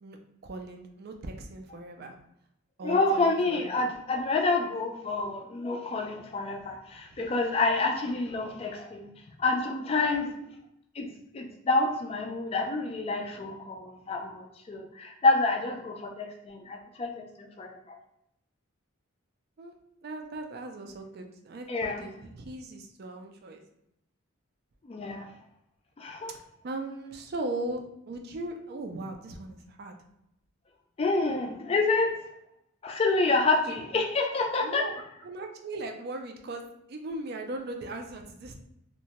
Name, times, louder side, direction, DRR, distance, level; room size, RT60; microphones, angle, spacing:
voice 1, 0.4-2.1 2.8-3.9 6.6-7.2 9.9-10.5 19.6-19.7 20.0-23.6 26.6-30.0 33.5-33.6 34.6-36.6 36.9-38.6, right 2 dB, 45° right, 4 dB, 0.3 m, -38 dB
voice 2, 2.8-9.1 9.4-10.3 11.0-11.1 11.3-17.1 17.4-18.0 21.7-22.0 24.8-25.3 26.0-26.3 31.0-32.1 32.8-34.8, left 3 dB, 30° left, 2 dB, 0.3 m, -28 dB
2.8 x 2.1 x 2.8 m, 0.79 s
head